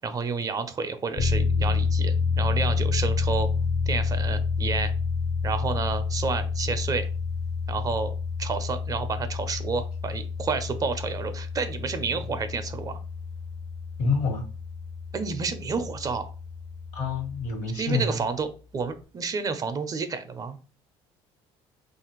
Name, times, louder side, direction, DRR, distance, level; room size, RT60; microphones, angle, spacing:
voice 1, 0.0-3.5 3.9-4.9 5.4-7.1 7.7-8.1 8.4-13.0 15.1-16.3 17.7-20.6, right 4 dB, 30° right, 9 dB, 0.4 m, -30 dB
sound 1, 1.2-17.5, left 5 dB, 40° left, 0.5 m, -29 dB
voice 2, 14.0-14.4 16.9-18.2, left 4 dB, 75° left, 3 dB, 1.2 m, -27 dB
3.1 x 2.4 x 2.9 m, 0.35 s
cardioid pair, 110°, 12 cm